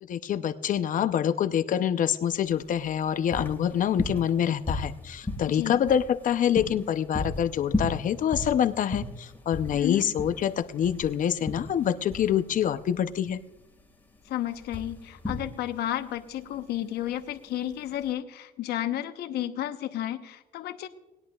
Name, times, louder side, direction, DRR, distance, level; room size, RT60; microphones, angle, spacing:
voice 1, 0.0-13.4, left 9 dB, 50° left, 11 dB, 0.7 m, -26 dB
sound 1, 2.5-18.1, left 2 dB, 10° left, 1.9 m, -36 dB
voice 2, 5.5-5.8 9.7-10.0 14.3-20.9, left 12 dB, 75° left, 8 dB, 1.0 m, -32 dB
20.5 x 10.5 x 2.4 m, 1.0 s
cardioid pair, 110°, 17 cm